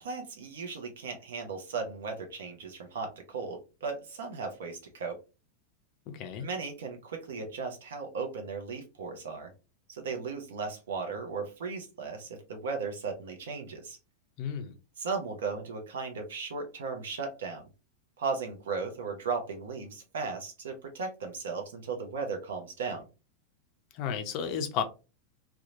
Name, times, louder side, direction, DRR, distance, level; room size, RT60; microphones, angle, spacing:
voice 1, 0.0-5.2 6.4-9.5 9.9-14.0 15.0-17.6 18.2-23.1, right 4 dB, 60° right, 4 dB, 0.6 m, -36 dB
voice 2, 6.1-6.5 14.4-14.7 24.0-24.8, left 7 dB, 40° left, 7 dB, 0.4 m, -32 dB
2.8 x 2.1 x 2.6 m, 0.30 s
figure-of-eight pair, 90°, 0 cm